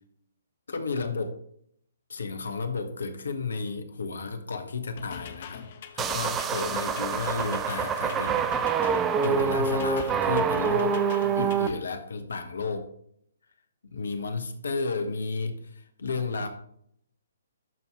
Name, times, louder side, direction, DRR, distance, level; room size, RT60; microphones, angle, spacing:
voice 1, 0.7-1.4 2.1-5.7 5.9-8.4 9.2-11.0 11.3-12.9 13.9-16.5, left 4 dB, 60° left, 8 dB, 1.0 m, -32 dB
sound 1, 5.0-11.8, left 8 dB, 40° left, 0.9 m, -43 dB
sound 2, 6.0-11.7, right 6 dB, 15° right, 0.4 m, -26 dB
12.0 x 4.4 x 3.5 m, 0.68 s
figure-of-eight pair, 130°, 0 cm